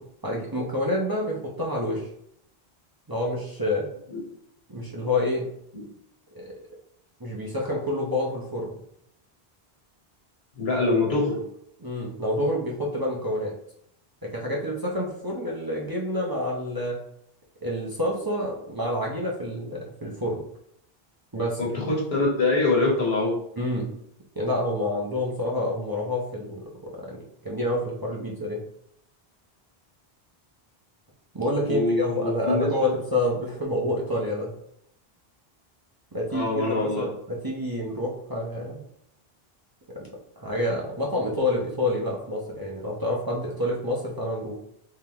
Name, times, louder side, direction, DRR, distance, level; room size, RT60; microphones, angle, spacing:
voice 1, 0.0-2.1 3.1-3.9 4.7-5.5 6.3-6.5 7.2-8.7 11.8-13.5 14.2-17.0 17.6-20.5 21.3-21.6 23.6-23.9 24.4-28.6 31.3-34.5 36.1-38.8 39.9-40.1 40.4-44.5, left 1 dB, 25° right, -4 dB, 0.7 m, -28 dB
voice 2, 10.6-11.4 21.6-23.3 31.7-32.9 36.3-37.1, left 2 dB, 80° left, -3 dB, 1.5 m, -24 dB
3.8 x 3.5 x 2.9 m, 0.74 s
omnidirectional pair, 1.0 m